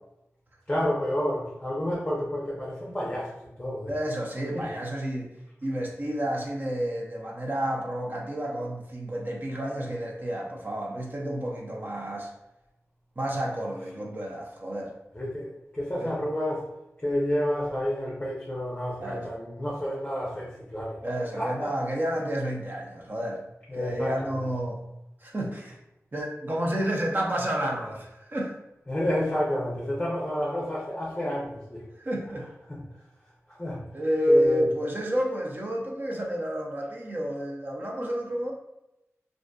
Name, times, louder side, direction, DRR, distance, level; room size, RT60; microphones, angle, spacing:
voice 1, 0.7-3.3 3.6-3.9 4.5-4.7 15.1-16.7 17.0-21.0 21.4-21.7 23.7-24.5 28.9-31.8 32.7-32.8 33.5-33.8 34.3-34.6, left 1 dB, 20° left, -5 dB, 0.6 m, -30 dB
voice 2, 3.9-12.3 13.2-14.9 16.0-16.1 19.0-19.3 21.0-23.4 23.7-24.8 25.2-25.8 26.1-28.6 32.0-32.5 33.9-38.5, equal, 40° right, -1 dB, 0.6 m, -30 dB
2.5 x 2.5 x 2.3 m, 0.90 s
wide cardioid pair, 65°, 5 cm